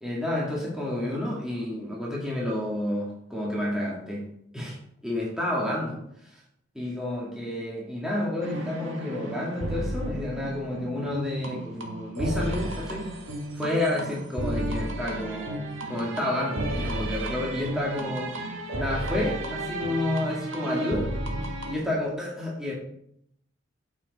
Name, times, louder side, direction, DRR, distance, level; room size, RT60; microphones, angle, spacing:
voice 1, 0.0-4.2 4.5-6.0 6.3-6.4 6.8-13.1 13.5-15.6 15.9-18.3 18.8-21.1 21.7-22.8, left 1 dB, 5° right, -5 dB, 1.9 m, -30 dB
sound 1, 8.4-21.8, right 1 dB, 75° right, 1.7 m, -33 dB
8.9 x 7.4 x 4.1 m, 0.73 s
head